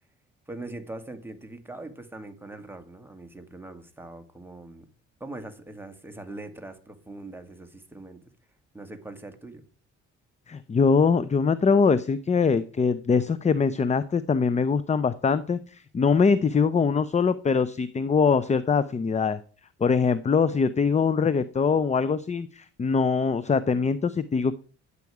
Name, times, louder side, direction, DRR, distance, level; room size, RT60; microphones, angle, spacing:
voice 1, 0.5-4.9 5.2-8.2 8.7-9.6, right 2 dB, 5° right, 6 dB, 1.8 m, -41 dB
voice 2, 10.5-19.4 19.8-24.6, left 5 dB, 25° left, 15 dB, 0.5 m, -23 dB
10.5 x 8.3 x 4.8 m, 0.40 s
cardioid pair, 90°, 30 cm